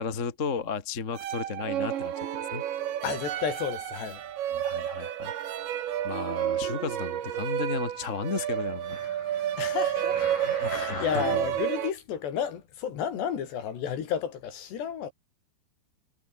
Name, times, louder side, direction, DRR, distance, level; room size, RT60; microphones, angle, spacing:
voice 1, 0.0-2.1 2.5-2.6 4.5-5.3 6.0-9.0 10.4-11.5, left 5 dB, 30° left, 1.4 m, -34 dB
sound 1, 1.1-11.9, right 11 dB, 80° right, 4.5 m, -31 dB
voice 2, 3.0-4.2 9.6-10.3 10.7-15.1, left 8 dB, 70° left, 5.1 m, -32 dB
sound 2, 7.1-11.7 12.3-12.4, left 4 dB, 45° left, 8.7 m, -44 dB
omnidirectional pair, 5.1 m